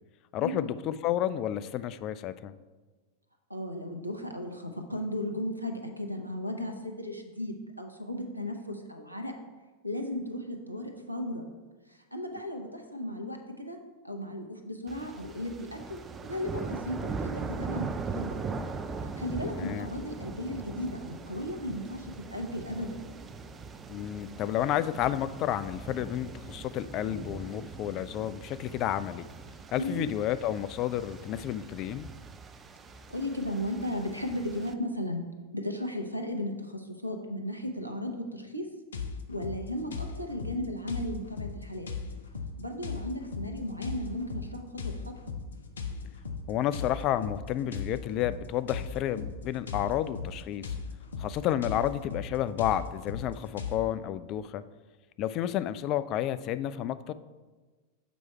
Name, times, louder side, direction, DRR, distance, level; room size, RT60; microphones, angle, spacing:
voice 1, 0.3-2.5 19.4-19.9 23.9-29.3 29.7-32.1 46.5-50.7 51.2-54.6 55.2-57.1, left 11 dB, 35° left, 13 dB, 0.3 m, -31 dB
voice 2, 3.5-9.3 9.8-11.5 11.9-13.8 14.0-18.6 19.2-23.1 29.8-30.1 33.1-35.3 35.5-38.7 39.3-41.9 42.6-44.9, left 1 dB, 90° right, 4 dB, 0.8 m, -35 dB
sound 1, 14.9-34.7, right 4 dB, 20° right, 0.5 m, -40 dB
sound 2, 38.9-53.8, left 5 dB, 70° left, 0.7 m, -38 dB
7.2 x 4.7 x 4.3 m, 1.3 s
figure-of-eight pair, 90°, 0 cm